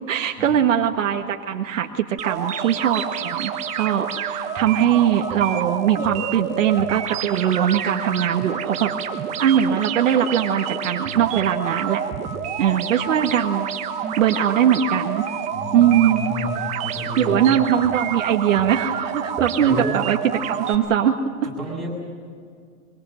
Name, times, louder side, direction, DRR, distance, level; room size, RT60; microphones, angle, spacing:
voice 1, 0.1-12.0 12.6-13.7 14.2-15.2 15.7-16.3 17.2-21.2, right 9 dB, 55° right, 4 dB, 1.7 m, -21 dB
sound 1, 2.2-20.8, right 8 dB, 15° right, 1.2 m, -28 dB
voice 2, 15.5-16.5 16.8-17.5 19.5-19.9 21.5-22.1, left 1 dB, ahead, -2 dB, 7.7 m, -31 dB
24.0 x 24.0 x 7.7 m, 2.1 s
hypercardioid pair, 145°, 45 cm